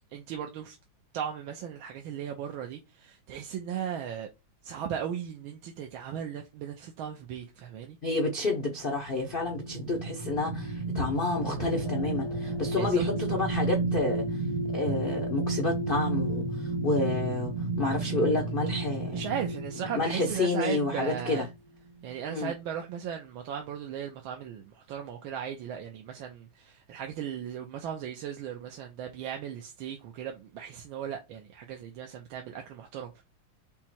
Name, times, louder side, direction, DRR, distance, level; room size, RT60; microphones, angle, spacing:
voice 1, 0.1-0.8 1.1-4.3 4.6-8.0 12.8-13.1 19.1-21.5 22.0-33.2, right 8 dB, 85° right, 1.5 m, -37 dB
voice 2, 8.0-14.4 14.7-17.5 17.8-19.2 19.9-21.4 22.3-22.5, left 2 dB, 80° left, 0.5 m, -29 dB
sound 1, 8.7-21.6 22.0-22.2, right 2 dB, 65° right, 1.4 m, -32 dB
sound 2, 11.3-15.0, right 1 dB, ahead, 1.1 m, -47 dB
5.6 x 2.1 x 4.4 m
omnidirectional pair, 2.2 m